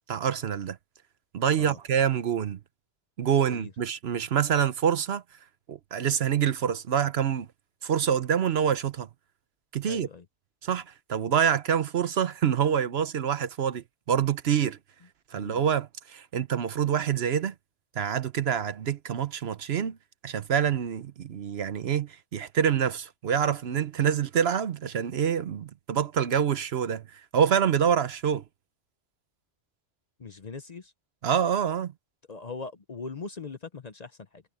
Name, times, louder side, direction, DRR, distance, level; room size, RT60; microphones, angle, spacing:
voice 1, 0.1-0.8 1.3-2.6 3.2-5.2 5.7-7.5 7.8-9.1 9.7-10.1 10.6-14.8 15.3-17.5 18.0-20.0 20.2-28.4 31.2-31.9, right 8 dB, 65° right, 1.0 m, -26 dB
voice 2, 9.9-10.2 15.3-15.6 30.2-30.9 32.3-34.4, left 4 dB, 40° left, 0.8 m, -40 dB
omnidirectional pair, 1.2 m